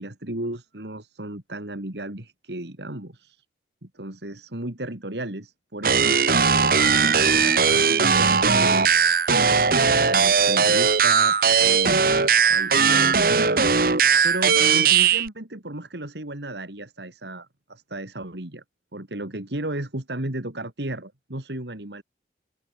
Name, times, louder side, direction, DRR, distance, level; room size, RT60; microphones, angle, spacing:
voice 1, 0.0-3.4 3.8-6.3 6.6-9.7 10.0-12.1 12.5-18.6 18.9-22.0, right 1 dB, 75° right, 2.9 m, -34 dB
sound 1, 5.8-15.3, right 5 dB, 55° right, 1.6 m, -19 dB
open air
head